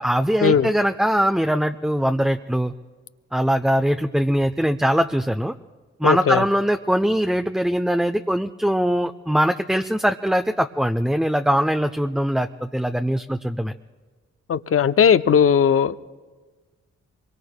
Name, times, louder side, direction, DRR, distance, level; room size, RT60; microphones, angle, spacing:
voice 1, 0.0-2.7 3.3-5.5 6.0-13.7, equal, ahead, 6 dB, 0.6 m, -21 dB
voice 2, 6.0-6.4 14.5-16.0, left 7 dB, 50° left, 13 dB, 0.6 m, -17 dB
25.0 x 23.0 x 2.2 m, 1.4 s
supercardioid pair, 50°, 29 cm